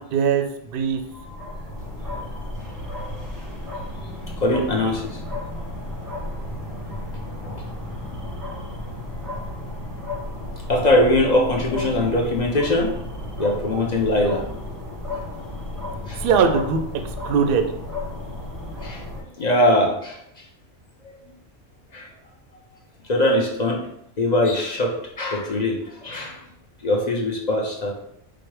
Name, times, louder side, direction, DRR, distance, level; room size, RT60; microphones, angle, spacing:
voice 1, 0.0-1.0 16.2-16.8 17.2-17.7, right 6 dB, 60° right, 7 dB, 0.6 m, -20 dB
sound 1, 0.7-19.2, left 1 dB, 20° right, 0.8 m, -33 dB
voice 2, 1.1-1.5 3.0-3.3 4.4-5.2 7.4-7.7 10.7-12.9 13.4-14.4 16.1-16.2 18.8-20.5 21.9-22.1 23.0-23.9 24.2-26.4 26.8-28.0, left 1 dB, 45° left, -1 dB, 0.6 m, -22 dB
4.8 x 2.1 x 4.6 m, 0.76 s
omnidirectional pair, 1.3 m